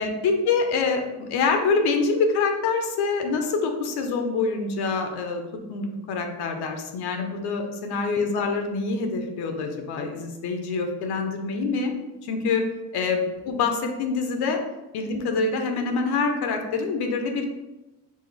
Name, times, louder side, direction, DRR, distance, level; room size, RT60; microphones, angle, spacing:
voice 1, 0.0-5.4 5.7-11.9 12.2-12.6 12.9-14.6 14.9-17.5, left 4 dB, 70° left, 4 dB, 0.8 m, -25 dB
4.9 x 2.4 x 4.0 m, 1.0 s
cardioid pair, 145°, 40 cm